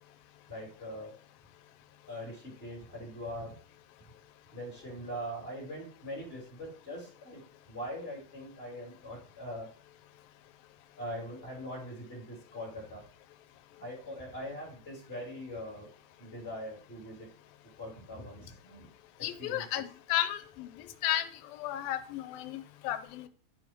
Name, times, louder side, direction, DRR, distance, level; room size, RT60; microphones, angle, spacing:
voice 1, 0.5-1.2 2.1-3.6 4.5-7.4 7.7-9.7 11.0-13.0 13.8-15.9 16.2-17.3 17.8-18.9 19.2-19.8, equal, 15° left, -1 dB, 2.8 m, -42 dB
voice 2, 19.2-20.7 21.0-21.2 21.5-23.3, left 13 dB, 90° left, 11 dB, 2.5 m, -33 dB
11.0 x 4.7 x 5.0 m, 0.42 s
omnidirectional pair, 4.1 m